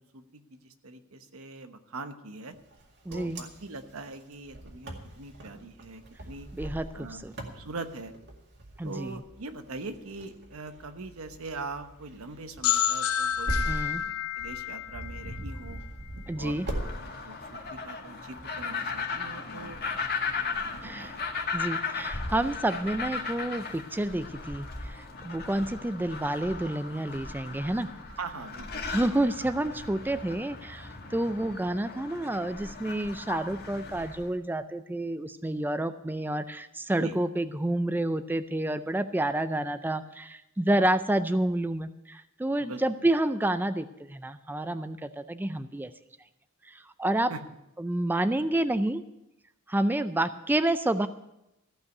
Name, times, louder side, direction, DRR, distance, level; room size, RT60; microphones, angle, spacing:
voice 1, 0.0-2.6 3.1-6.5 6.9-8.1 8.8-15.8 16.4-16.9 17.2-19.8 20.4-21.2 28.2-28.9 37.0-37.2 42.6-42.8 47.3-47.4, right 3 dB, 80° right, 9 dB, 1.1 m, -42 dB
Wind, 2.7-16.9, right 1 dB, 55° right, 2.2 m, -40 dB
voice 2, 3.1-3.4 6.5-6.9 7.2-7.3 8.8-9.2 13.7-14.0 16.3-16.7 20.8-21.2 21.5-27.9 28.9-45.9 46.6-47.3 47.8-49.0 49.7-51.1, right 1 dB, 10° right, 11 dB, 0.4 m, -29 dB
sound 1, 12.6-16.3, left 9 dB, 85° left, 0.6 m, -30 dB
sound 2, 16.5-34.3, left 4 dB, 50° left, 1.9 m, -37 dB
15.0 x 5.7 x 9.2 m, 0.90 s
head